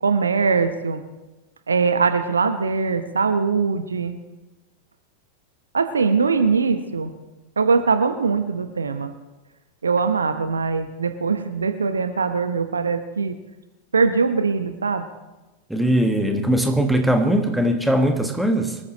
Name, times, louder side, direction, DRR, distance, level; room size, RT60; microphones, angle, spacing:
voice 1, 0.0-1.0 1.7-4.2 5.7-7.1 7.6-9.1 9.8-13.4 13.9-15.1, right 5 dB, 75° right, 9 dB, 0.9 m, -21 dB
voice 2, 15.7-18.8, right 1 dB, 5° right, 4 dB, 1.6 m, -20 dB
24.5 x 14.0 x 3.1 m, 1.1 s
figure-of-eight pair, 90°, 0 cm